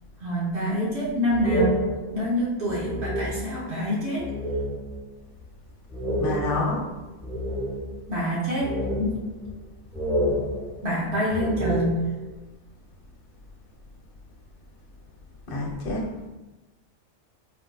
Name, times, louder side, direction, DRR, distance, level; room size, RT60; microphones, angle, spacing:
voice 1, 0.2-4.3 8.1-9.3 10.8-12.1, equal, 65° right, -6 dB, 1.1 m, -26 dB
sound 1, 1.3-3.7 4.2-5.0 5.4-5.5 5.9-8.1 8.6-9.7 9.9-12.3, equal, ahead, 1.1 m, -29 dB
voice 2, 6.2-6.8 15.5-16.3, left 2 dB, 55° left, -2 dB, 0.9 m, -28 dB
4.5 x 2.6 x 2.3 m, 1.1 s
omnidirectional pair, 1.2 m